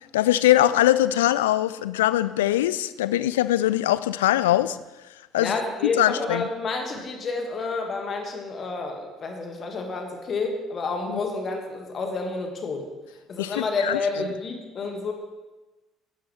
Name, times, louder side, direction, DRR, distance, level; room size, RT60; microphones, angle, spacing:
voice 1, 0.1-4.8 5.3-5.6 6.0-6.5 11.1-11.2 13.4-14.0, left 14 dB, 70° left, 16 dB, 0.3 m, -22 dB
voice 2, 5.4-12.9 13.3-15.1, left 3 dB, 40° left, 4 dB, 1.8 m, -29 dB
18.0 x 11.5 x 3.3 m, 1.1 s
figure-of-eight pair, 55°, 0 cm